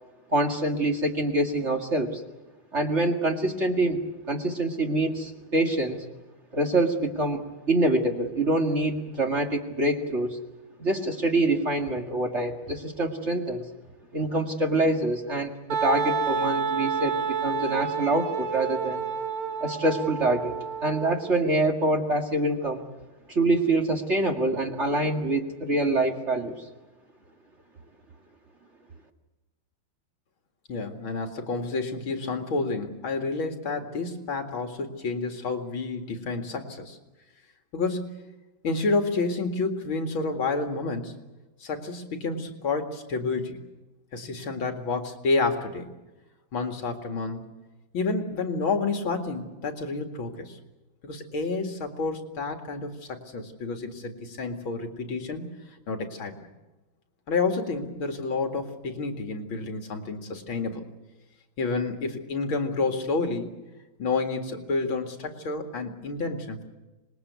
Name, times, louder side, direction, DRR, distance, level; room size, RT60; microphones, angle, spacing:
voice 1, 0.3-2.2 2.7-6.0 6.5-7.4 7.7-10.4 10.8-13.6 14.1-19.0 19.6-20.5 20.8-22.8 23.3-26.5, right 2 dB, 35° right, 3 dB, 2.3 m, -25 dB
Wind instrument woodwind instrument, 15.7-21.3, right 5 dB, 85° right, 2.0 m, -29 dB
voice 2, 30.7-37.0 37.7-38.2 38.6-41.1 41.6-43.6 44.1-45.9 46.5-47.4 47.9-50.6 51.0-55.4 55.9-56.3 57.3-60.8 61.6-63.5 64.0-66.6, left 3 dB, 70° left, 5 dB, 2.9 m, -29 dB
26.0 x 20.5 x 8.2 m, 1.1 s
omnidirectional pair, 2.3 m